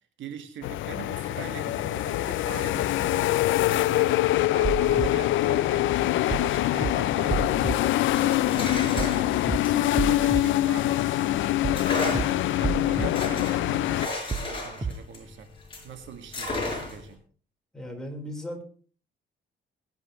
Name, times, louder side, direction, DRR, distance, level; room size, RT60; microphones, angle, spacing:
voice 1, 0.2-4.1 4.4-15.5 15.8-17.2, right 7 dB, 75° right, 7 dB, 1.8 m, -42 dB
sound 1, 0.6-14.1, left 15 dB, 80° left, 0.5 m, -24 dB
sound 2, 4.6-5.1 6.3-6.5 6.8-6.9 7.3-7.7 9.0-9.2 9.5-9.6 10.0-10.4 11.6-11.9 12.1-12.2 12.6-13.1 14.3-14.5 14.8-14.9, right 5 dB, 25° right, 1.5 m, -29 dB
sound 3, 8.0-11.1 11.7-15.9 16.3-17.1, left 2 dB, 25° left, 5.8 m, -34 dB
voice 2, 17.7-18.6, equal, 5° left, 1 dB, 4.2 m, -36 dB
21.5 x 9.6 x 3.1 m, 0.41 s
cardioid pair, 90°, 20 cm